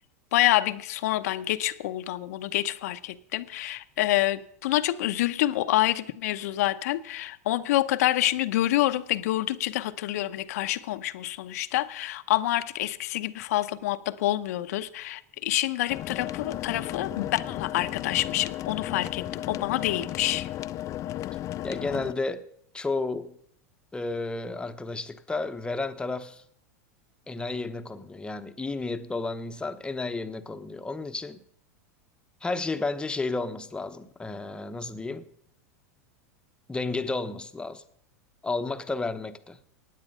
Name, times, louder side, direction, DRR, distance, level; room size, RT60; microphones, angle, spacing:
voice 1, 0.3-20.5, left 15 dB, 70° left, 0.7 m, -27 dB
sound 1, 15.9-22.1, left 13 dB, 40° left, 0.5 m, -34 dB
voice 2, 21.6-22.4 22.7-23.4 23.9-26.4 27.3-31.4 32.4-35.3 36.7-37.8 38.4-39.6, left 3 dB, 10° left, 0.9 m, -32 dB
16.0 x 9.7 x 5.5 m
hypercardioid pair, 105°, 9 cm